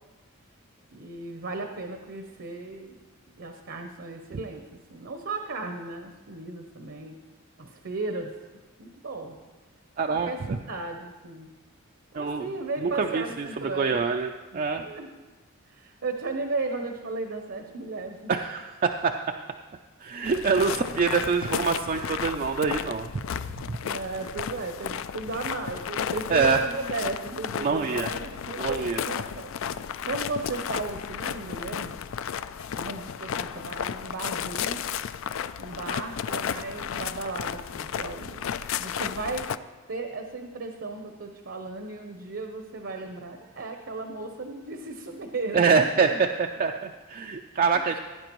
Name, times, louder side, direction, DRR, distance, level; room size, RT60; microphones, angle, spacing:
voice 1, 0.9-3.0 3.4-7.1 7.6-8.3 8.8-9.4 10.1-11.5 12.1-14.0 14.8-15.1 15.7-18.3 20.8-20.9 22.8-22.9 23.8-29.5 30.0-32.0 32.7-34.8 35.6-38.4 38.8-39.5 39.9-45.9 47.7-47.8, right 3 dB, 60° right, 5 dB, 0.7 m, -35 dB
voice 2, 10.0-10.6 12.1-12.5 12.8-14.8 18.3-19.4 20.0-23.2 23.7-23.8 26.3-26.6 27.6-28.1 28.6-29.0 45.5-48.0, right 5 dB, 40° right, 4 dB, 0.3 m, -25 dB
sound 1, 20.2-39.6, left 8 dB, 65° left, 0.3 m, -33 dB
17.0 x 9.7 x 3.0 m, 1.3 s
head